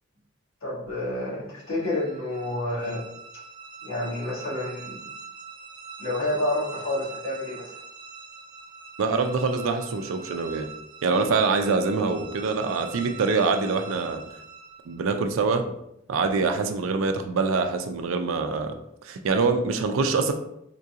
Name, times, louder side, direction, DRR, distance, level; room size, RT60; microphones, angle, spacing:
voice 1, 0.6-3.0 3.8-5.0 6.0-7.7, left 1 dB, 90° left, -7 dB, 1.5 m, -29 dB
sound 1, 1.6-15.0, right 4 dB, 20° right, 0.4 m, -43 dB
voice 2, 9.0-10.7 11.0-14.2 14.9-15.6 16.1-18.7 19.0-20.3, right 4 dB, 90° right, 6 dB, 0.4 m, -24 dB
3.7 x 2.4 x 2.7 m, 0.78 s
head